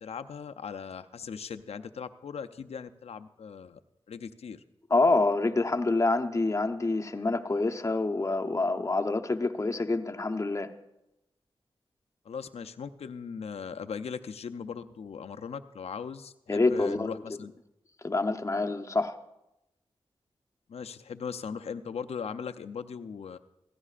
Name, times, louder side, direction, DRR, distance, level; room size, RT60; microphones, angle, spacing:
voice 1, 0.0-3.8 4.1-4.6 12.2-17.5 20.7-23.4, left 6 dB, 80° left, 9 dB, 0.6 m, -39 dB
voice 2, 4.9-10.7 16.5-17.2 18.0-19.2, left 3 dB, 30° left, 5 dB, 0.8 m, -27 dB
16.0 x 15.5 x 2.5 m, 0.90 s
cardioid pair, 60°, 10 cm